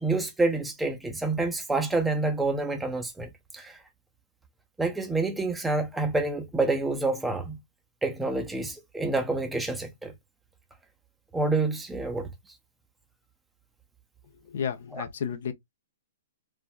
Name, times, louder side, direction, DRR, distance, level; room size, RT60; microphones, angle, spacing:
voice 1, 0.0-3.8 4.8-7.6 8.0-10.1 11.3-12.3 14.9-15.0, right 3 dB, 5° right, 0.5 m, -28 dB
voice 2, 14.4-15.5, left 7 dB, 65° left, 0.6 m, -32 dB
3.4 x 2.1 x 2.2 m
hypercardioid pair, 130°, 0 cm